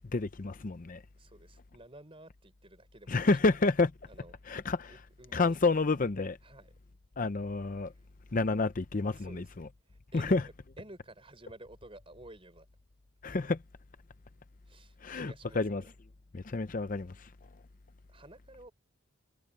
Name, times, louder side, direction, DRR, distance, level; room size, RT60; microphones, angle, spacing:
voice 1, 0.1-1.0 3.1-3.9 4.5-4.9 5.3-6.4 7.2-7.9 8.3-9.7 10.1-10.4 13.2-13.6 15.0-15.8 16.3-17.3, left 3 dB, 40° left, 0.6 m, -29 dB
voice 2, 1.2-3.6 4.1-4.3 4.9-5.6 6.4-6.7 7.9-8.1 9.2-9.5 9.9-10.4 10.8-12.7 14.7-15.9 18.1-18.7, right 1 dB, 25° right, 5.1 m, -52 dB
head